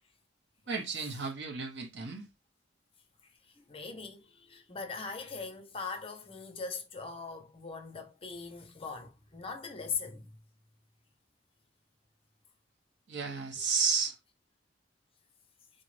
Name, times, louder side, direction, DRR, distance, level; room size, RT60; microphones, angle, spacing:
voice 1, 0.7-2.3 13.1-14.2, right 5 dB, 70° right, 0.9 m, -32 dB
voice 2, 3.5-10.3, left 5 dB, 30° left, 0.8 m, -40 dB
4.0 x 2.5 x 3.2 m
head